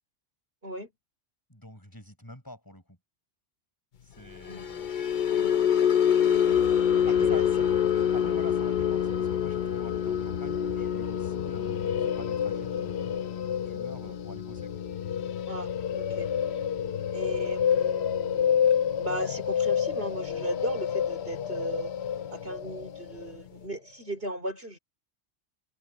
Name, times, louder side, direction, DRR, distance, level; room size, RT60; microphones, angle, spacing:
voice 1, 1.5-3.0 4.0-4.9 7.0-7.7 8.1-14.7, left 1 dB, 20° left, 6.5 m, -46 dB
sound 1, 4.3-20.7 21.0-21.3 21.7-21.9, left 8 dB, 50° left, 0.9 m, -28 dB
voice 2, 5.3-6.7 7.2-7.5 14.1-14.2 15.5-16.3 17.1-18.7 19.0-21.9 22.3-24.8, right 1 dB, 60° right, 5.2 m, -37 dB
sound 2, 6.4-23.3, left 8 dB, 70° left, 1.0 m, -31 dB
omnidirectional pair, 1.1 m